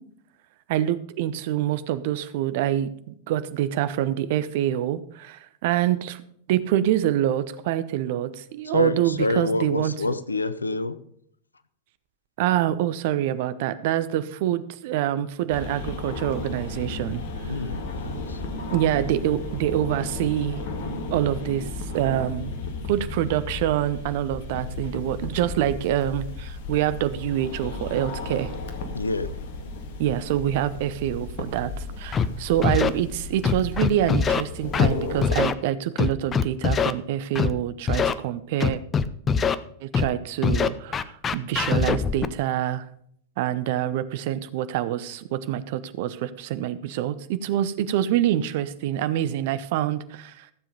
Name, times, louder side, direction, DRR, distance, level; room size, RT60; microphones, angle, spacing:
voice 1, 0.7-6.2 6.5-10.2 12.4-17.2 18.7-20.6 21.1-22.5 22.9-28.5 30.0-38.8 39.8-42.9 43.4-50.5, right 12 dB, 50° right, 13 dB, 0.8 m, -26 dB
voice 2, 8.7-11.0 17.4-18.4 28.9-29.3, left 2 dB, 80° left, 13 dB, 0.7 m, -27 dB
sound 1, 15.5-35.4, left 3 dB, 50° left, 1.8 m, -34 dB
Scratching (performance technique), 32.1-32.3 32.6-32.9 33.4-34.4 34.7-34.9 35.2-35.5 36.0-36.9 37.4-37.5 37.9-38.1 38.6-39.5 39.9-40.1 40.4-42.3, left 6 dB, 20° left, 0.6 m, -22 dB
15.0 x 7.5 x 5.3 m, 0.66 s
figure-of-eight pair, 90°, 0 cm